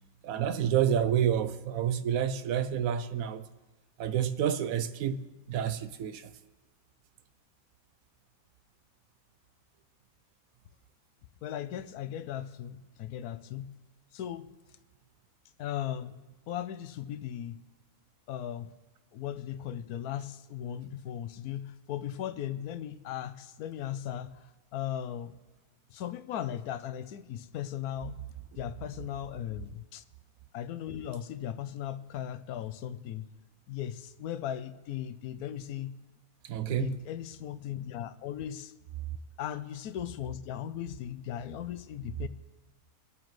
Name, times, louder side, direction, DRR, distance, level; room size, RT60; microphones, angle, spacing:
voice 1, 0.2-3.5 4.0-6.3 36.4-37.0, right 9 dB, 70° right, 1.0 m, -29 dB
voice 2, 11.4-13.7 14.1-14.5 15.6-16.2 16.5-17.6 18.3-18.7 19.1-25.4 25.9-28.2 28.6-30.0 30.5-33.3 33.7-35.9 36.7-38.7 39.4-42.3, left 10 dB, 75° left, 1.1 m, -37 dB
24.0 x 8.9 x 3.1 m
omnidirectional pair, 1.6 m